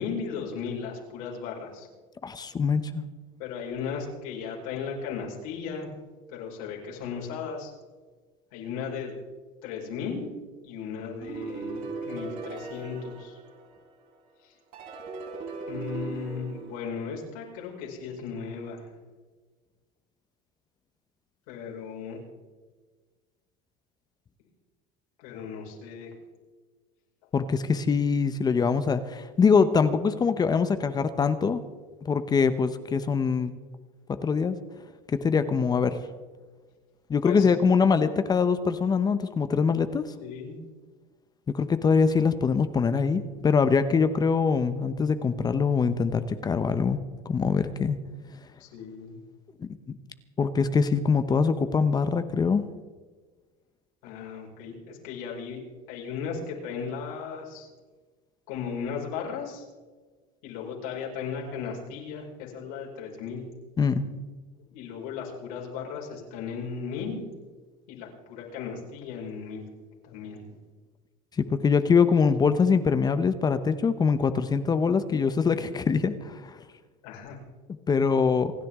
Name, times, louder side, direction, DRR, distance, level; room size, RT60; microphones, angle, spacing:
voice 1, 0.0-1.9 3.4-5.9 6.3-7.7 8.5-9.1 9.6-10.3 10.6-13.4 14.4-14.6 15.7-18.9 21.5-22.2 25.2-26.1 37.2-37.6 40.2-40.6 48.6-49.2 54.0-55.6 55.9-57.7 58.5-59.7 60.4-63.5 64.7-67.2 67.9-69.7 70.0-70.6 77.0-77.4, left 6 dB, 85° left, -2 dB, 5.4 m, -36 dB
voice 2, 2.2-2.8 27.3-31.6 32.0-33.5 34.1-34.6 35.1-36.0 37.1-40.0 41.5-47.0 47.2-48.0 49.9-50.0 50.4-52.7 63.8-64.0 71.4-76.6 77.9-78.5, left 5 dB, 20° left, 11 dB, 0.9 m, -23 dB
sound 1, 11.2-14.1 14.7-17.6, right 4 dB, 50° right, 5.2 m, -38 dB
28.0 x 10.5 x 3.7 m, 1.4 s
supercardioid pair, 130°, 18 cm